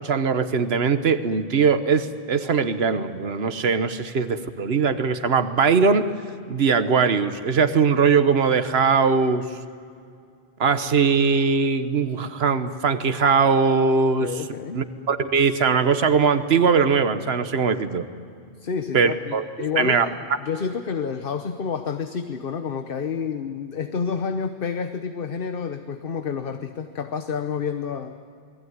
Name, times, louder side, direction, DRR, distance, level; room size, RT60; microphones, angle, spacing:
voice 1, 0.0-6.0 6.5-9.4 10.6-14.3 14.7-18.1 18.9-20.1, right 5 dB, 75° right, 10 dB, 1.4 m, -21 dB
voice 2, 14.2-14.8 18.6-28.2, left 6 dB, 60° left, 8 dB, 1.2 m, -29 dB
29.0 x 20.0 x 9.6 m, 2.4 s
omnidirectional pair, 1.1 m